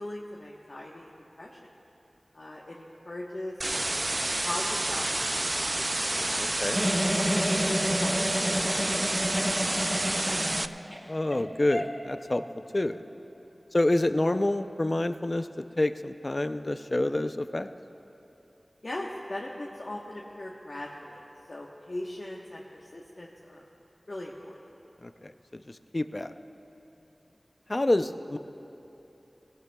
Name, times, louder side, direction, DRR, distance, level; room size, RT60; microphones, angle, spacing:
voice 1, 0.0-1.6 2.3-4.0 4.4-5.8 6.1-6.6 7.4-10.5 13.5-13.6 18.8-21.2 21.5-23.7 24.1-24.6, left 1 dB, 60° left, -4 dB, 1.1 m, -40 dB
sound 1, 3.6-10.7, right 1 dB, 40° right, 0.3 m, -29 dB
voice 2, 6.4-6.8 11.1-12.4 12.7-13.0 13.7-15.5 15.8-17.7 25.0-25.6 25.9-26.3 27.7-28.4, left 1 dB, 45° left, 10 dB, 0.5 m, -27 dB
Giggle, 6.7-11.0 11.3-11.4 11.7-11.9, equal, 5° left, 2.1 m, -29 dB
20.5 x 17.5 x 2.3 m, 3.0 s
wide cardioid pair, 45°, 0 cm